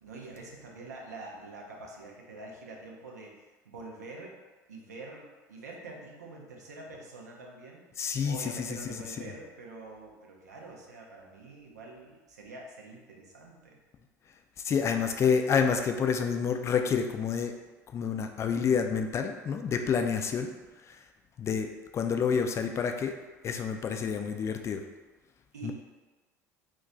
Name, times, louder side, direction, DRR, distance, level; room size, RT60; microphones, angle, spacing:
voice 1, 0.0-4.4 4.7-7.9 8.2-13.8 14.9-15.2 24.1-24.3 25.5-25.7, right 2 dB, 85° right, -1 dB, 0.5 m, -46 dB
voice 2, 8.0-8.7 9.2-9.3 14.6-17.5 17.9-20.5 20.9-21.0 21.4-23.2 23.4-24.8 25.6-25.7, left 6 dB, 30° left, 5 dB, 0.3 m, -28 dB
2.3 x 2.2 x 3.7 m, 1.2 s
hypercardioid pair, 70°, 9 cm